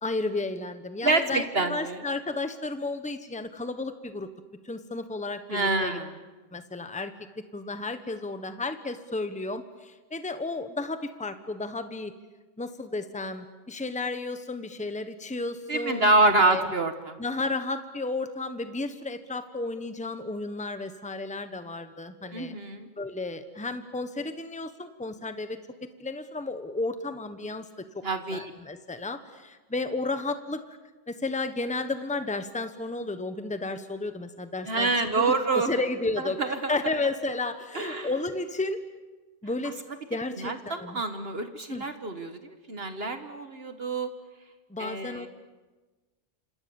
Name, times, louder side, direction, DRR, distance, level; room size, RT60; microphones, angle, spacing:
voice 1, 0.0-4.3 4.6-6.0 6.5-12.1 12.6-16.7 17.2-22.5 23.0-25.6 26.0-28.0 28.3-30.8 31.1-34.9 35.2-35.3 35.5-38.8 39.4-39.8 40.1-41.0 41.7-41.8 44.7-45.3, left 3 dB, 5° left, 9 dB, 1.2 m, -33 dB
voice 2, 1.0-2.0 5.5-6.1 15.7-17.2 22.3-22.9 28.0-28.5 34.7-35.7 36.4-36.7 37.8-38.1 40.4-44.1 44.8-45.3, right 3 dB, 55° right, 8 dB, 1.7 m, -26 dB
27.5 x 27.0 x 7.2 m, 1.2 s
omnidirectional pair, 1.2 m